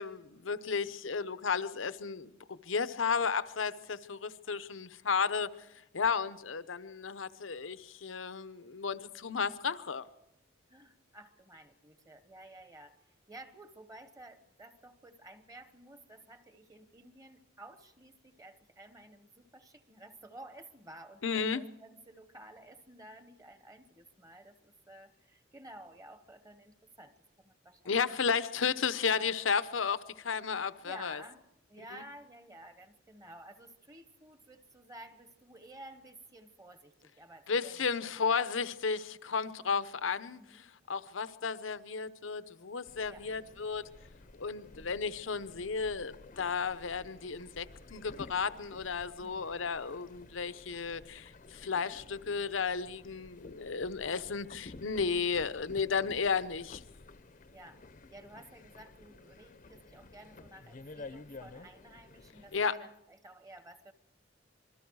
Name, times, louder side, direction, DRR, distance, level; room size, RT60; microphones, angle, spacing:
voice 1, 0.0-5.7 5.9-10.1 21.2-21.6 27.9-31.2 37.5-40.6 40.9-43.8 44.4-56.8 62.5-62.7, left 5 dB, 85° left, 13 dB, 0.8 m, -33 dB
voice 2, 10.7-13.0 13.3-27.9 29.1-29.3 30.8-31.4 31.7-38.5 40.4-40.6 43.1-43.3 49.2-49.6 57.5-57.8 58.1-63.9, right 1 dB, 20° right, 10 dB, 1.1 m, -53 dB
sound 1, 42.9-62.7, left 3 dB, 45° left, 0.7 m, -52 dB
26.5 x 21.5 x 4.8 m, 0.86 s
head